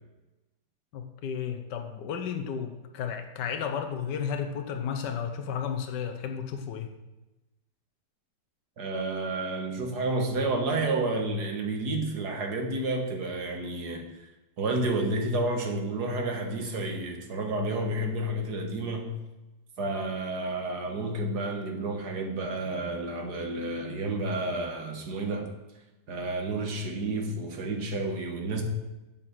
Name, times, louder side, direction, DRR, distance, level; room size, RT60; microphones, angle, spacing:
voice 1, 0.9-6.9, left 7 dB, 80° left, 6 dB, 1.5 m, -33 dB
voice 2, 8.8-14.1 14.6-19.2 19.8-25.5 26.1-28.6, right 2 dB, 70° right, 3 dB, 1.9 m, -30 dB
7.7 x 7.6 x 6.0 m, 1.0 s
omnidirectional pair, 1.8 m